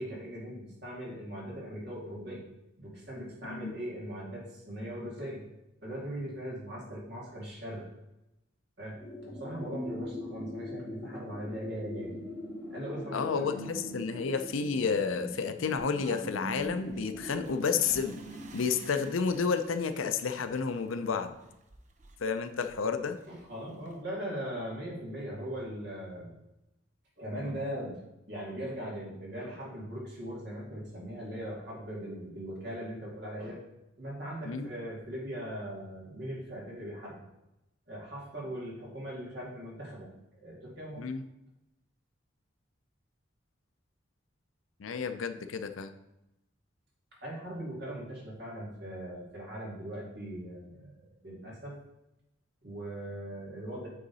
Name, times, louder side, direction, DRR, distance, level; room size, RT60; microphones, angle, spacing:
voice 1, 0.0-2.4 2.8-5.4 5.8-7.8 8.8-9.0 9.3-12.1 12.7-13.3 23.3-26.3 27.2-28.0 28.3-33.6 34.0-37.2 37.9-40.1 40.4-41.0 47.2-50.9 51.2-51.8 52.6-53.9, right 1 dB, 55° right, -4 dB, 2.4 m, -40 dB
sound 1, 9.0-19.1, equal, 15° left, 1.5 m, -42 dB
voice 2, 13.1-18.2 18.5-21.3 22.2-23.2 34.4-34.7 41.0-41.2 44.8-45.9, left 5 dB, 85° left, 9 dB, 0.5 m, -31 dB
sound 2, 15.8-24.0, right 2 dB, 35° right, 0.6 m, -53 dB
8.4 x 3.9 x 4.1 m, 0.92 s
head